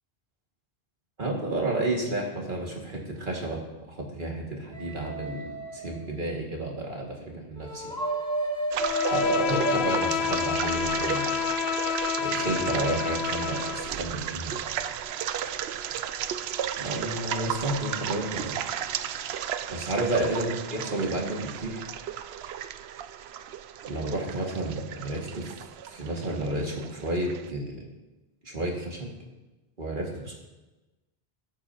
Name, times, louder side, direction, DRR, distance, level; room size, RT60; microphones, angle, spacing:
voice 1, 1.2-3.6 3.9-7.9 9.1-11.3 12.2-14.5 16.8-18.6 19.7-21.8 23.9-25.5 25.9-27.7 28.4-29.1 29.8-30.3, right 2 dB, 55° right, -1 dB, 2.4 m, -31 dB
sound 1, 4.7-6.1 7.5-9.8, right 1 dB, 5° left, 3.2 m, -30 dB
sound 2, 8.7-27.5, right 9 dB, 80° right, 0.8 m, -34 dB
Bowed string instrument, 8.8-14.0, left 9 dB, 85° left, 0.9 m, -29 dB
18.5 x 8.9 x 2.9 m, 1.1 s
omnidirectional pair, 1.0 m